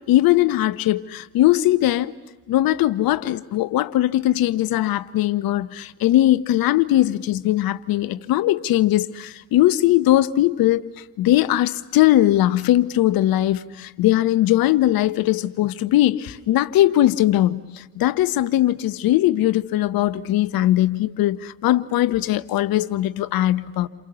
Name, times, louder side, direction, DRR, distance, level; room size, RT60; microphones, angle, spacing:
voice 1, 0.1-2.1 2.5-10.8 11.2-23.9, left 14 dB, 55° left, 1.1 m, -20 dB
29.0 x 28.0 x 7.0 m
figure-of-eight pair, 55°, 44 cm